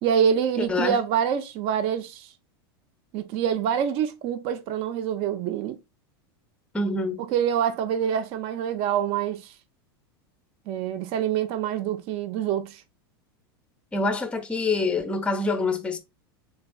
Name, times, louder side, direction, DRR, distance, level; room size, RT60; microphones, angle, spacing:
voice 1, 0.0-2.3 3.1-5.8 7.2-9.5 10.7-12.8, right 8 dB, 50° right, 0.5 m, -26 dB
voice 2, 0.6-1.0 6.7-7.2 13.9-16.0, left 3 dB, 10° left, 0.6 m, -26 dB
3.3 x 3.3 x 2.3 m
hypercardioid pair, 105°, 13 cm